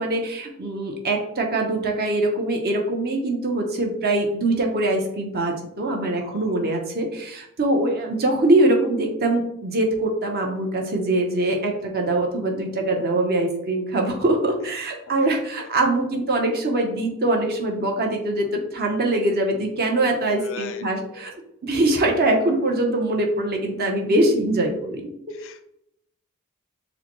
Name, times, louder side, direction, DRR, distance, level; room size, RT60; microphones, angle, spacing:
voice 1, 0.0-21.3 21.6-25.1, right 2 dB, 45° right, 2 dB, 0.8 m, -23 dB
voice 2, 6.2-6.7 15.2-15.3 15.6-15.7 20.4-21.3 25.3-25.6, left 4 dB, 65° left, 9 dB, 0.4 m, -40 dB
6.5 x 2.2 x 3.0 m, 0.77 s
head